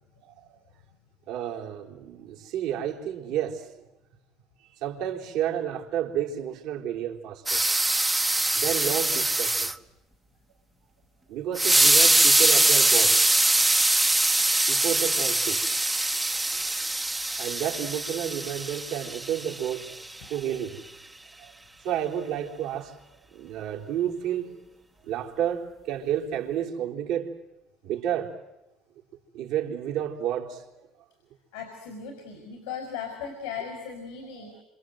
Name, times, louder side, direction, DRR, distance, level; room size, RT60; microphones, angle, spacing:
voice 1, 1.3-3.7 4.6-7.6 8.5-9.7 11.3-13.2 14.7-15.6 17.4-20.8 21.4-21.5 21.8-22.9 23.3-24.6 25.0-27.3 27.8-28.4 29.3-30.9 34.4-34.5, right 10 dB, 75° right, 3.9 m, -31 dB
sound 1, 7.5-9.7 11.6-19.9, right 2 dB, 10° right, 1.2 m, -23 dB
voice 2, 31.5-34.5, left 7 dB, 85° left, 5.4 m, -37 dB
27.5 x 27.0 x 7.9 m
hypercardioid pair, 75°, 0 cm